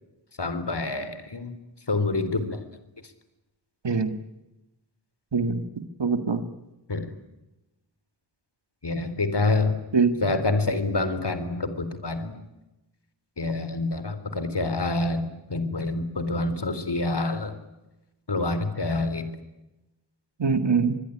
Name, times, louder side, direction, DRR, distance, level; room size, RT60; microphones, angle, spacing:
voice 1, 0.4-1.5 1.9-2.6 6.9-7.1 8.8-9.7 10.2-12.4 13.4-15.2 15.5-17.5 18.3-19.3, left 2 dB, 70° left, 11 dB, 3.7 m, -27 dB
voice 2, 3.8-4.2 5.3-6.4 9.9-10.3 20.4-21.0, right 5 dB, 80° right, 10 dB, 1.9 m, -24 dB
24.5 x 22.0 x 9.9 m, 0.98 s
wide cardioid pair, 55°, 42 cm